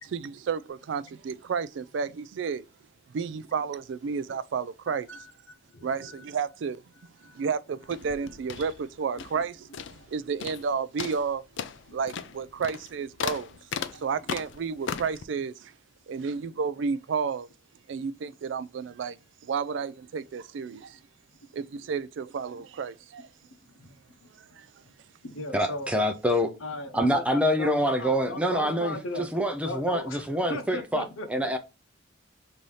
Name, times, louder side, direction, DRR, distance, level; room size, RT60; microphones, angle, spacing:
voice 1, 0.1-2.6 3.1-5.2 5.8-6.8 7.3-11.4 11.9-13.5 13.9-15.7 16.1-17.5 17.9-21.0 21.5-23.3 24.4-24.7, right 6 dB, 60° right, 0.3 m, -32 dB
voice 2, 4.9-5.3 5.7-6.3 7.0-7.5 8.0-8.1 9.2-9.3 10.0-10.1 11.9-12.0 13.9-14.0 17.9-18.3 23.7-24.0 25.2-25.9 26.6-29.3 29.6-30.2 30.5-31.5, left 2 dB, 80° left, 0.9 m, -38 dB
sound 1, 7.8-9.5 9.7-10.1 10.4-10.7 11.0-15.2, left 7 dB, 60° left, 0.4 m, -36 dB
voice 3, 25.5-26.5 26.9-31.6, equal, 5° right, 0.5 m, -26 dB
5.4 x 2.7 x 3.2 m
head